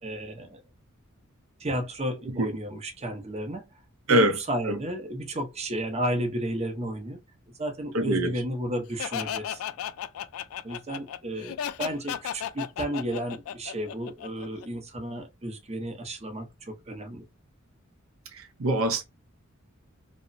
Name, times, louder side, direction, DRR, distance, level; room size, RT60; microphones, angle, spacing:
voice 1, 0.0-0.6 1.6-3.7 4.1-7.2 7.6-9.6 10.6-17.2, right 1 dB, 30° right, 0.7 m, -33 dB
voice 2, 7.9-8.3 18.3-19.0, right 1 dB, 70° right, 0.5 m, -24 dB
Laughter, 9.0-14.7, left 9 dB, 75° left, 0.3 m, -34 dB
3.0 x 2.1 x 2.5 m
head